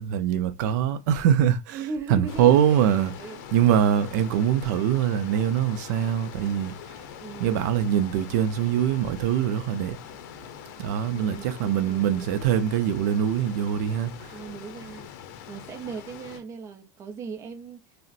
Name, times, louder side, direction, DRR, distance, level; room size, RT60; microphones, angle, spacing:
voice 1, 0.0-1.8 2.1-3.1 3.5-7.1 7.4-10.0 10.8-14.4, right 9 dB, 75° right, 0.4 m, -23 dB
voice 2, 1.7-3.4 7.2-7.7 11.1-12.3 14.3-17.8, right 5 dB, 30° right, 0.6 m, -38 dB
sound 1, 2.3-16.4, left 10 dB, 70° left, 0.6 m, -43 dB
3.9 x 2.1 x 2.4 m
supercardioid pair, 145°, 10 cm